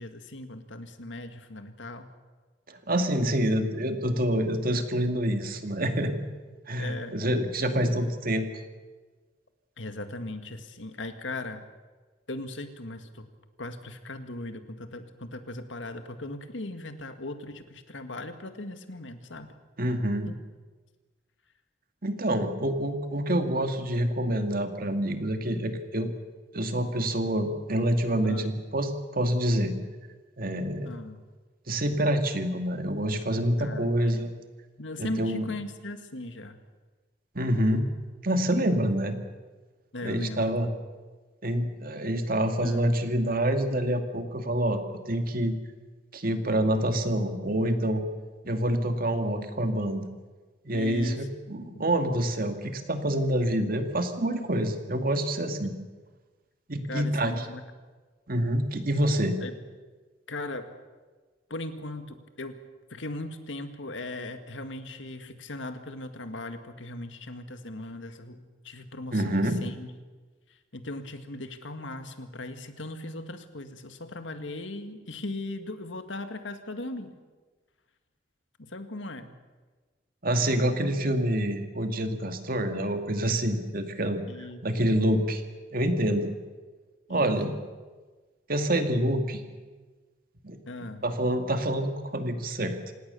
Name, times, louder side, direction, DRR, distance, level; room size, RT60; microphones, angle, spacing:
voice 1, 0.0-2.1 6.8-7.2 9.8-11.7 12.3-13.3 13.6-19.6 20.2-20.4 28.2-28.6 30.8-31.2 33.6-34.3 34.8-36.6 39.9-40.5 42.6-42.9 48.4-48.5 50.7-51.3 51.7-51.8 56.9-57.6 59.4-59.5 60.3-60.7 61.5-62.6 62.9-69.9 70.5-77.1 78.6-79.4 84.3-84.7 87.1-87.3 90.7-91.1, left 2 dB, 85° left, 8 dB, 2.0 m, -38 dB
voice 2, 2.7-6.3 6.7-8.5 19.8-20.3 22.0-26.1 26.5-29.7 30.4-30.9 31.7-34.3 35.0-35.5 37.3-37.9 38.2-39.2 40.0-40.7 41.4-44.8 45.1-45.5 46.1-48.0 48.4-50.1 50.6-55.7 56.7-57.3 58.3-59.4 69.1-69.6 80.2-85.4 85.7-86.3 87.1-87.5 88.5-89.4 90.4-90.6 91.0-92.8, right 1 dB, 50° right, 6 dB, 2.3 m, -27 dB
27.0 x 18.5 x 7.0 m, 1.3 s
head